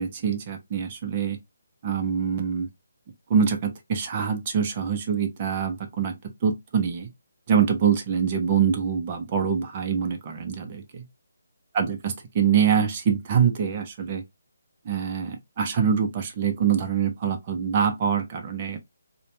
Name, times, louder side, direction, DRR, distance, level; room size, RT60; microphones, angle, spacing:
voice 1, 0.0-1.4 1.8-2.7 3.3-6.1 6.4-7.1 7.5-11.0 11.7-14.2 14.9-18.8, right 7 dB, 30° right, 0.5 m, -24 dB
2.9 x 2.1 x 2.6 m
hypercardioid pair, 165°, 0 cm